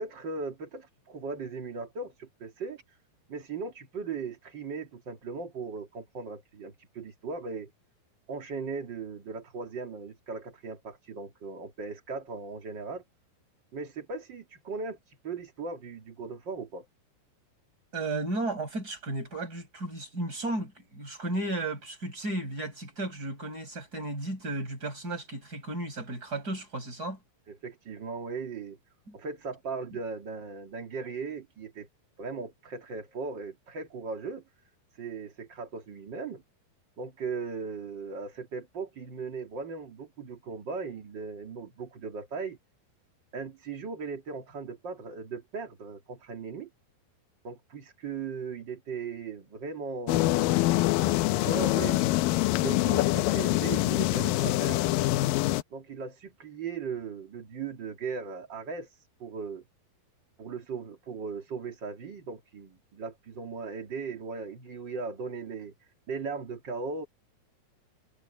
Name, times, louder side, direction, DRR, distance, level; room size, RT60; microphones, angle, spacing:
voice 1, 0.0-3.0 3.3-7.7 8.3-13.0 13.7-16.9 27.5-28.8 29.1-31.9 32.2-34.4 34.9-36.4 37.0-42.6 43.3-46.7 47.4-50.6 50.9-51.1 51.4-52.0 52.6-54.8 55.7-59.6 60.4-65.7 66.1-67.1, right 4 dB, 35° right, 2.0 m, -38 dB
voice 2, 17.9-27.2 29.1-29.2, right 2 dB, 20° right, 6.9 m, -34 dB
sound 1, 50.1-55.6, left 17 dB, 85° left, 2.1 m, -25 dB
omnidirectional pair, 4.7 m